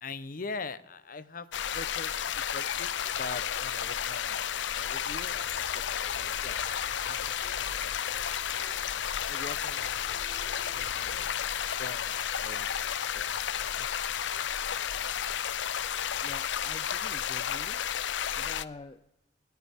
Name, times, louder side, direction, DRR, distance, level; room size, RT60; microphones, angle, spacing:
voice 1, 0.0-4.4 4.7-8.0 9.2-10.0 10.7-11.4 11.8-13.9, left 4 dB, 50° left, 15 dB, 0.8 m, -43 dB
sound 1, 1.5-18.6, left 9 dB, 80° left, 0.5 m, -32 dB
sound 2, 5.1-11.3, equal, 25° right, 5.3 m, -52 dB
voice 2, 16.2-17.8 18.4-19.1, left 3 dB, 30° left, 12 dB, 0.4 m, -46 dB
28.5 x 13.0 x 3.6 m, 0.95 s
head